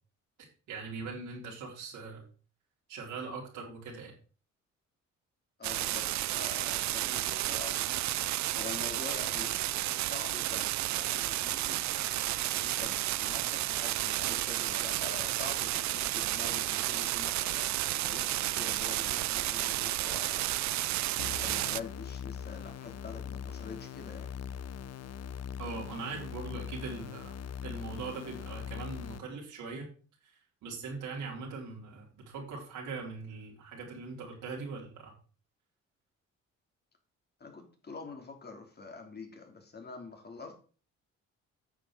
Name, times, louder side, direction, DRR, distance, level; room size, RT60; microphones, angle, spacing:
voice 1, 0.7-2.2 2.9-4.1 25.6-27.3 27.6-29.9 30.6-35.1, right 4 dB, 85° right, -2 dB, 4.0 m, -41 dB
voice 2, 5.6-7.9 8.5-11.8 12.6-17.7 17.9-20.4 21.2-24.3 37.4-40.5, left 4 dB, 35° left, 3 dB, 3.3 m, -46 dB
sound 1, 5.6-21.8, right 15 dB, 65° right, 0.5 m, -32 dB
sound 2, 21.2-29.2, left 8 dB, 55° left, 0.9 m, -41 dB
9.3 x 6.5 x 6.3 m, 0.38 s
cardioid pair, 90°, 30 cm